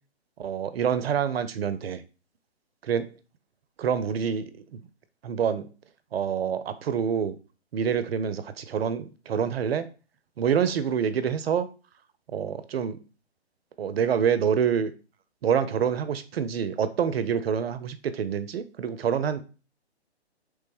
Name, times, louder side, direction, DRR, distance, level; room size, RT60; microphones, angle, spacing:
voice 1, 0.4-2.0 2.8-3.1 3.8-4.5 5.2-5.7 6.1-7.4 7.7-9.9 10.4-11.7 12.3-13.0 13.8-14.9 15.4-19.4, right 7 dB, 65° right, 13 dB, 0.5 m, -26 dB
3.2 x 2.1 x 3.2 m, 0.34 s
figure-of-eight pair, 135°, 33 cm